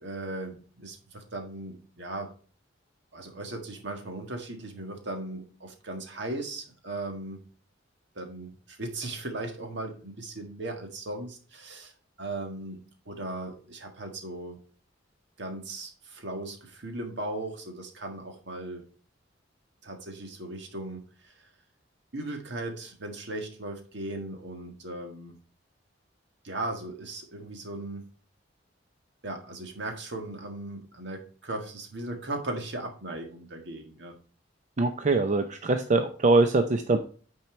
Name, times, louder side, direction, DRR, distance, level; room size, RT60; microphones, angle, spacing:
voice 1, 0.0-2.3 3.1-7.4 8.1-11.9 12.2-12.8 13.0-14.6 15.4-18.8 19.8-21.3 22.1-25.3 26.4-28.1 29.2-34.2, right 2 dB, 65° right, 4 dB, 1.6 m, -37 dB
voice 2, 34.8-37.0, right 3 dB, 40° right, 7 dB, 0.5 m, -23 dB
9.3 x 4.5 x 4.4 m, 0.41 s
head